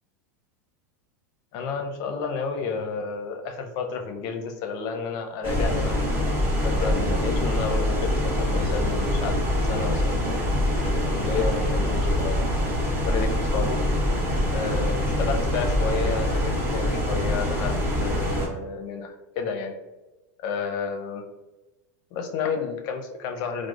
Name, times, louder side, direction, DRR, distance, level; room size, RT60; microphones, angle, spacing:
voice 1, 1.5-10.4 10.8-12.4 13.1-13.8 14.5-19.7 20.4-21.2 22.1-23.7, left 5 dB, 50° left, 4 dB, 0.6 m, -31 dB
sound 1, 5.4-18.5, left 1 dB, 20° right, 1.0 m, -24 dB
4.6 x 2.0 x 2.4 m, 1.1 s
supercardioid pair, 120°, 9 cm